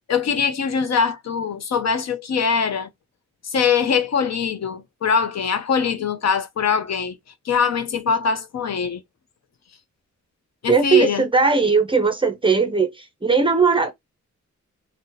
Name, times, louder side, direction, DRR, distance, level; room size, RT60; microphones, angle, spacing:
voice 1, 0.1-2.9 3.4-7.2 7.5-9.0 10.6-11.2, left 6 dB, 60° left, 0.6 m, -22 dB
voice 2, 10.7-13.9, right 5 dB, 15° right, 0.5 m, -18 dB
2.7 x 2.1 x 3.8 m
wide cardioid pair, 175°, 30 cm